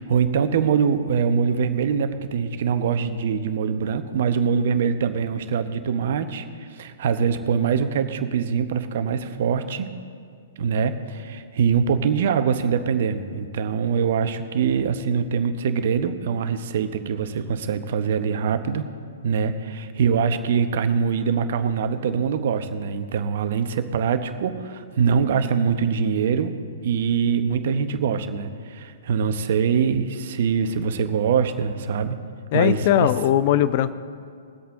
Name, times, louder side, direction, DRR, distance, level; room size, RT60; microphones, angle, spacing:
voice 1, 0.0-9.9 10.6-18.9 19.2-26.6 26.8-32.2 32.5-33.1, right 6 dB, 55° right, 9 dB, 1.0 m, -23 dB
voice 2, 32.5-33.9, left 12 dB, 45° left, 15 dB, 0.5 m, -19 dB
21.5 x 8.1 x 3.7 m, 2.2 s
figure-of-eight pair, 115°, 0 cm